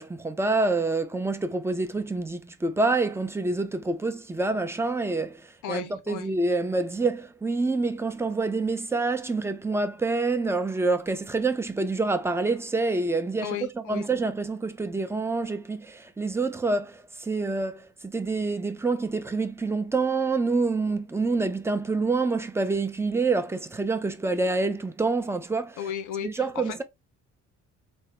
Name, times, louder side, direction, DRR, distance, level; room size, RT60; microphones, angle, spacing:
voice 1, 0.0-13.6 13.9-25.8 26.2-26.8, right 3 dB, 10° right, 0.5 m, -27 dB
voice 2, 5.6-6.3 13.4-14.1 25.8-26.8, left 9 dB, 90° left, 0.6 m, -35 dB
3.5 x 2.1 x 2.9 m
cardioid pair, 90°, 30 cm